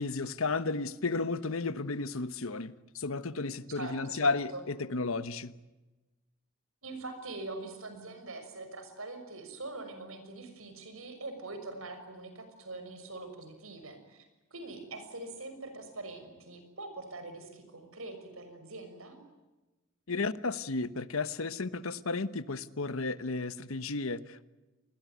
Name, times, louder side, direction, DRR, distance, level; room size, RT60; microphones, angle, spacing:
voice 1, 0.0-5.5 20.1-24.4, left 3 dB, 85° left, 14 dB, 1.2 m, -33 dB
voice 2, 3.7-4.6 6.8-19.2, right 2 dB, 85° right, 8 dB, 6.2 m, -43 dB
27.5 x 21.5 x 9.3 m, 1.1 s
head